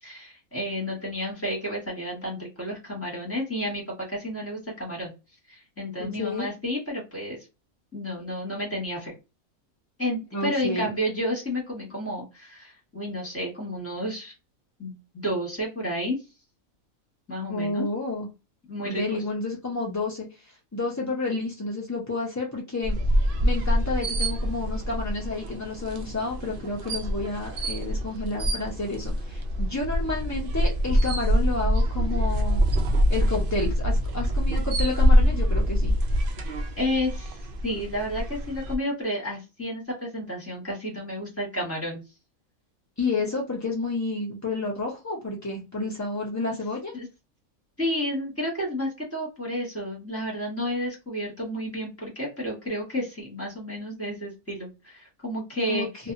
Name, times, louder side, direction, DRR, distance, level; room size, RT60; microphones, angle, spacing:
voice 1, 0.0-5.1 5.5-7.4 7.9-9.1 10.0-14.3 14.8-16.2 17.3-17.9 18.7-19.2 36.8-42.0 46.9-47.1 47.8-55.9, equal, 10° left, -2 dB, 1.1 m, -31 dB
voice 2, 6.0-6.5 10.3-10.9 17.5-18.3 18.9-23.0 23.4-32.6 33.1-36.0 43.0-46.9 55.7-56.1, left 3 dB, 30° left, -3 dB, 0.3 m, -30 dB
sound 1, 22.8-38.8, equal, 70° right, 0.5 m, -25 dB
2.7 x 2.3 x 2.5 m, 0.27 s
omnidirectional pair, 1.5 m